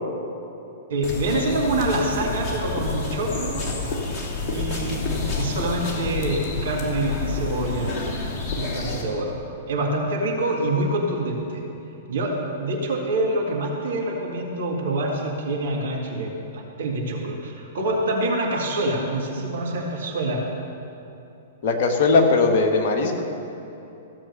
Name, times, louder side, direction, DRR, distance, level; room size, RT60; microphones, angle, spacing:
voice 1, 0.9-3.6 4.5-5.0 5.4-8.0 8.6-9.4 9.7-11.6 12.1-20.4, right 2 dB, 60° right, -1 dB, 2.0 m, -26 dB
sound 1, 1.0-9.0, left 4 dB, 25° left, 2.4 m, -29 dB
voice 2, 21.6-23.2, left 3 dB, 45° left, 2 dB, 1.6 m, -19 dB
15.0 x 7.4 x 6.7 m, 2.9 s
figure-of-eight pair, 105°, 0 cm